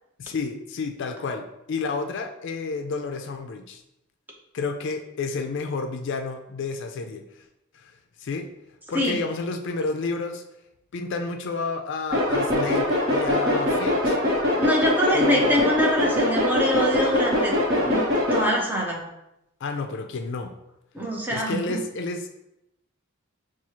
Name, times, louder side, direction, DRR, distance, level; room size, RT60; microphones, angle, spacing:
voice 1, 0.2-3.8 4.5-7.4 7.7-7.9 8.2-8.5 8.9-10.4 10.9-14.2 15.1-15.4 19.6-20.5 21.3-22.3, left 4 dB, 60° left, 5 dB, 0.4 m, -30 dB
sound 1, 12.1-18.5, left 1 dB, 55° right, 1.1 m, -23 dB
voice 2, 14.6-17.5 17.8-18.0 18.3-19.1 20.9-21.8, equal, 10° right, -2 dB, 0.7 m, -24 dB
6.0 x 2.4 x 2.9 m, 0.86 s
head